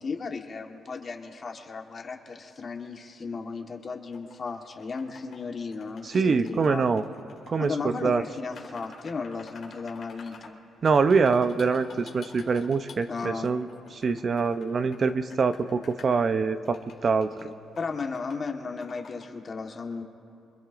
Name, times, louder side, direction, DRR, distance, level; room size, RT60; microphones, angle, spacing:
voice 1, 0.0-6.9 7.6-10.6 13.1-13.5 17.4-20.0, left 4 dB, 40° left, 4 dB, 1.4 m, -35 dB
sound 1, 4.1-5.4 5.7-8.0 8.5-10.5 10.8-13.0 13.4-16.1 16.6-17.4 17.7-18.5 18.8-19.3, left 5 dB, 65° left, 2.5 m, -50 dB
voice 2, 6.0-7.0 7.5-8.2 10.8-17.3, right 5 dB, 45° right, 10 dB, 0.6 m, -24 dB
26.0 x 21.5 x 2.6 m, 2.5 s
cardioid pair, 90°, 0 cm